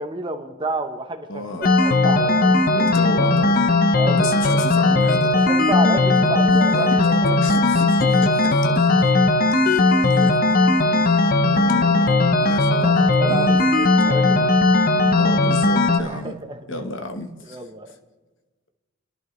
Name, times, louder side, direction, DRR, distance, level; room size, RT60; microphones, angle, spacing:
voice 1, 0.0-2.9 3.9-4.6 5.3-7.3 10.8-10.9 12.7-14.5 16.0-16.8 17.4-17.9, right 2 dB, 20° right, 0.9 m, -30 dB
voice 2, 1.3-1.8 2.7-3.6 4.1-5.3 6.5-7.1 7.4-8.9 9.6-10.4 11.0-12.9 13.3-13.6 15.2-16.4 16.7-17.7, left 1 dB, 60° left, 1.1 m, -31 dB
sound 1, 1.6-16.0, left 2 dB, 40° left, 0.8 m, -17 dB
27.0 x 11.5 x 3.2 m
head